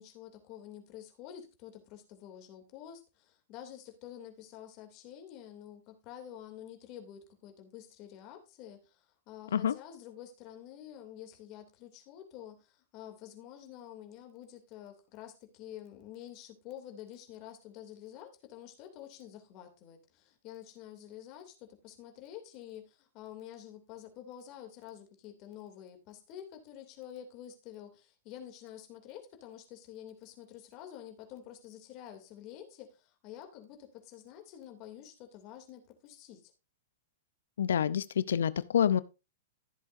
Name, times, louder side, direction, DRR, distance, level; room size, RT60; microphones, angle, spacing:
voice 1, 0.0-36.5, left 10 dB, 45° left, 2.8 m, -49 dB
voice 2, 37.6-39.0, left 9 dB, 75° left, 0.6 m, -27 dB
14.5 x 8.0 x 2.7 m
hypercardioid pair, 115°, 0 cm